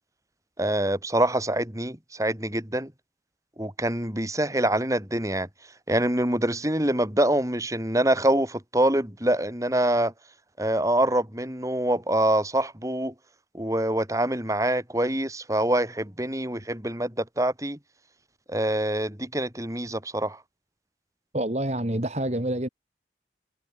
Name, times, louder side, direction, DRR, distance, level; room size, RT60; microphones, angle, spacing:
voice 1, 0.6-2.9 3.6-5.5 5.9-10.1 10.6-13.1 13.5-17.8 18.5-20.4, right 1 dB, 20° right, 5.0 m, -25 dB
voice 2, 21.3-22.7, right 1 dB, 40° right, 2.5 m, -27 dB
head